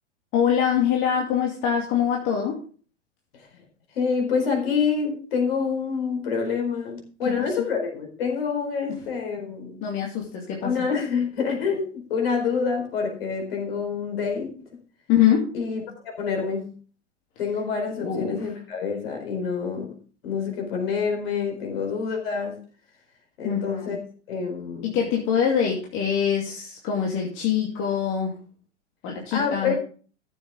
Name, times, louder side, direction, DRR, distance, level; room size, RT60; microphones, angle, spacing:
voice 1, 0.3-2.6 7.3-7.7 8.9-9.0 9.8-10.9 15.1-15.5 18.0-18.5 23.4-24.0 24.8-28.4 29.0-29.7, left 8 dB, 35° left, -1 dB, 2.5 m, -24 dB
voice 2, 3.9-9.8 10.6-14.5 15.5-16.7 17.4-19.9 20.2-22.6 23.4-24.0 24.3-24.9 29.3-29.8, left 5 dB, 55° left, 3 dB, 4.7 m, -27 dB
14.5 x 7.8 x 3.7 m, 0.40 s
figure-of-eight pair, 95°, 36 cm